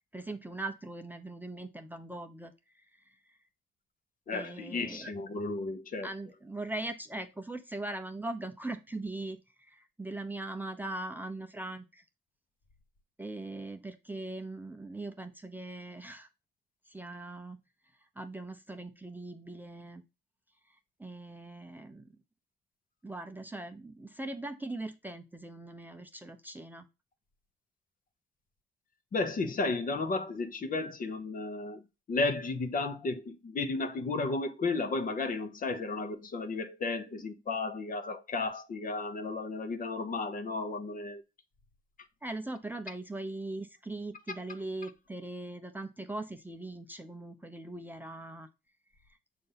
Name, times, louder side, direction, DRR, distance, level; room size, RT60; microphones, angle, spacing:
voice 1, 0.1-2.5 3.1-3.2 4.3-5.1 6.0-12.0 13.2-16.3 16.9-17.6 18.2-20.0 21.0-22.1 23.0-26.8 42.2-48.5, right 2 dB, 10° right, 0.6 m, -40 dB
voice 2, 4.3-6.1 29.1-31.8 32.1-41.2, left 3 dB, 45° left, 0.9 m, -33 dB
6.7 x 2.7 x 5.5 m
cardioid pair, 90°, 20 cm